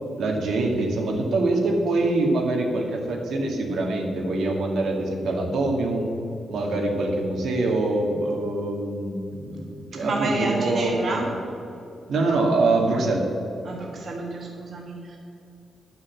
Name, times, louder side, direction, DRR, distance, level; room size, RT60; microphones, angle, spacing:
voice 1, 0.2-6.1 6.5-11.3 12.1-13.3, right 2 dB, 75° right, 0 dB, 1.9 m, -24 dB
voice 2, 9.9-11.3 13.6-15.2, right 2 dB, 40° right, -1 dB, 1.6 m, -29 dB
11.0 x 6.4 x 7.5 m, 2.7 s
wide cardioid pair, 170°, 0 cm